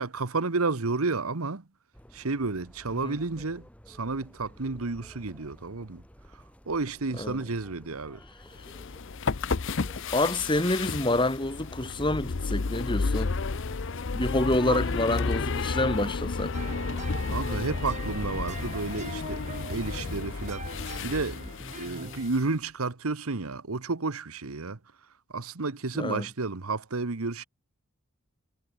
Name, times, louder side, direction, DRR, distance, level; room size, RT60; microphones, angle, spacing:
voice 1, 0.0-1.6 2.1-6.0 6.7-8.2 14.7-14.8 17.3-19.4 19.7-20.6 21.0-21.4 21.7-24.8 25.3-27.4, right 3 dB, 80° right, 1.2 m, -31 dB
sound 1, 1.9-20.2, equal, 5° left, 5.4 m, -53 dB
sound 2, 8.6-22.4, left 4 dB, 60° left, 0.7 m, -32 dB
voice 2, 10.1-13.3 14.1-16.5 26.0-26.3, left 1 dB, 20° left, 2.7 m, -27 dB
sound 3, 16.5-22.3, right 3 dB, 35° right, 5.0 m, -42 dB
head